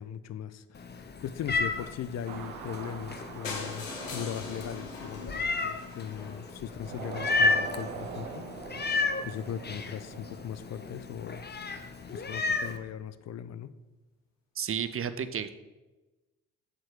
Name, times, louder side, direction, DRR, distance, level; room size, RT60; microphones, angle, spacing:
voice 1, 0.0-8.4 8.8-11.5 12.1-13.7, left 9 dB, 45° left, 13 dB, 0.6 m, -39 dB
Meow, 0.7-12.8, left 3 dB, 25° left, 0.9 m, -33 dB
sound 1, 2.3-6.3 6.8-10.9, right 6 dB, 80° right, 0.7 m, -43 dB
sound 2, 3.4-7.3 8.0-8.1 8.3-8.4 8.7-8.8 9.0-9.1, left 3 dB, 85° left, 1.1 m, -41 dB
voice 2, 14.6-15.5, right 8 dB, 35° right, 12 dB, 0.7 m, -32 dB
7.2 x 5.2 x 6.5 m, 1.1 s
figure-of-eight pair, 40°, 38 cm